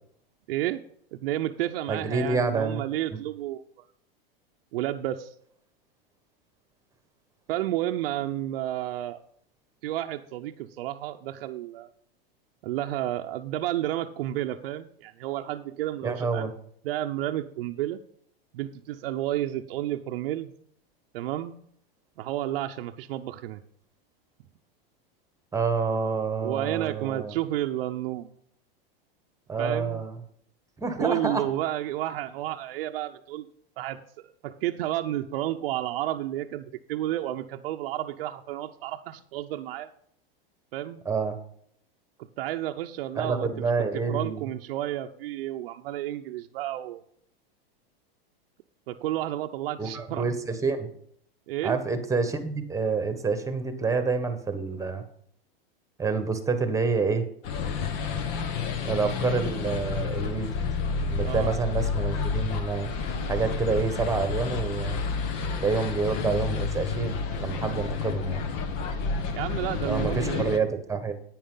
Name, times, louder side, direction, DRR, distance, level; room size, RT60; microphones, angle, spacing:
voice 1, 0.5-0.8 1.1-3.6 4.7-5.3 7.5-9.2 9.8-11.9 12.6-16.5 16.8-18.0 18.5-20.5 21.1-21.5 22.2-23.6 26.4-28.3 29.6-30.0 31.0-33.5 33.8-34.0 34.4-39.9 40.7-41.0 42.4-43.7 44.1-47.0 48.9-50.3 51.5-51.8 61.2-61.5 69.3-70.5, right 13 dB, 70° right, 4 dB, 0.8 m, -31 dB
voice 2, 1.9-2.8 3.1-3.2 16.0-16.5 25.5-27.3 29.5-30.1 30.8-31.4 41.0-41.4 43.2-44.5 49.8-50.9 51.6-55.0 56.0-57.2 58.8-60.5 61.1-62.9 63.3-65.0 65.6-68.4 69.8-71.1, right 4 dB, 10° right, 8 dB, 1.4 m, -28 dB
sound 1, 57.4-70.6, left 5 dB, 50° left, 1.6 m, -30 dB
10.0 x 9.3 x 3.9 m, 0.65 s
hypercardioid pair, 125°, 30 cm